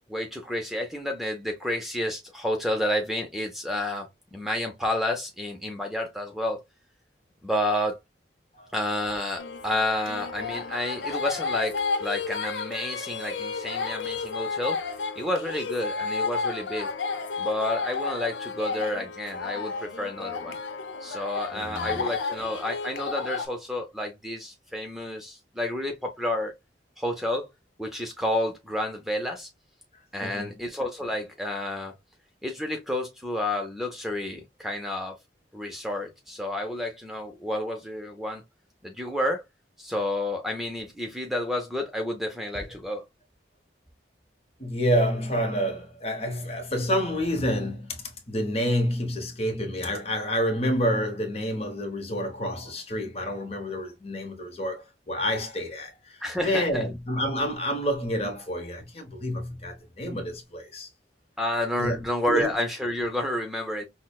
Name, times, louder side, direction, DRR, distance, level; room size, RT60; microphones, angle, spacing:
voice 1, 0.1-6.6 7.4-8.0 8.7-14.8 15.2-16.9 17.4-20.6 21.0-26.5 27.0-27.5 27.8-29.5 30.1-31.9 32.4-35.2 35.5-38.4 38.8-39.4 39.8-43.0 56.2-56.8 61.4-63.9, left 1 dB, ahead, 0.5 m, -30 dB
sound 1, 9.4-23.5, left 4 dB, 85° left, 0.8 m, -32 dB
voice 2, 21.5-22.0 30.2-30.5 44.6-60.9 61.8-62.5, equal, 35° left, 1.0 m, -28 dB
5.9 x 2.1 x 2.3 m
head